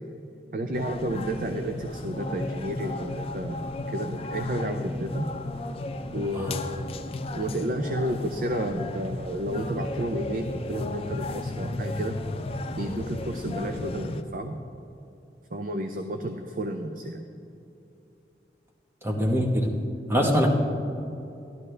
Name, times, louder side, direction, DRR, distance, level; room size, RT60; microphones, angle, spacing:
voice 1, 0.5-5.3 6.1-7.0 7.3-12.2 12.7-14.5 15.5-17.2 19.4-19.5 20.3-20.5, right 1 dB, 50° right, 6 dB, 0.5 m, -31 dB
sound 1, 0.7-14.2, left 2 dB, 30° left, 0.4 m, -34 dB
voice 2, 19.0-19.7 20.1-20.5, equal, 15° right, 0 dB, 1.1 m, -23 dB
13.0 x 12.0 x 3.3 m, 2.9 s
head